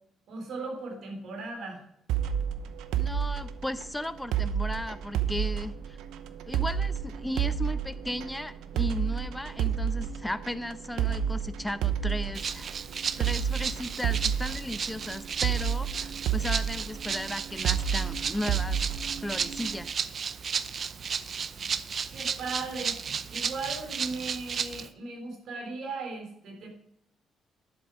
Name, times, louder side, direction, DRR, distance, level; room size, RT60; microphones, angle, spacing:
voice 1, 0.3-1.8 22.1-23.0 23.3-26.7, right 3 dB, 70° right, 2 dB, 3.6 m, -37 dB
sound 1, 2.1-19.8, right 8 dB, 90° right, 0.7 m, -31 dB
voice 2, 3.0-6.0 6.5-12.7 13.2-18.9 19.2-19.9, left 1 dB, 10° left, 13 dB, 0.7 m, -35 dB
Rattle (instrument), 12.3-24.9, right 6 dB, 50° right, 0.6 m, -34 dB
10.5 x 7.8 x 4.9 m, 0.76 s
cardioid pair, 90°, 0 cm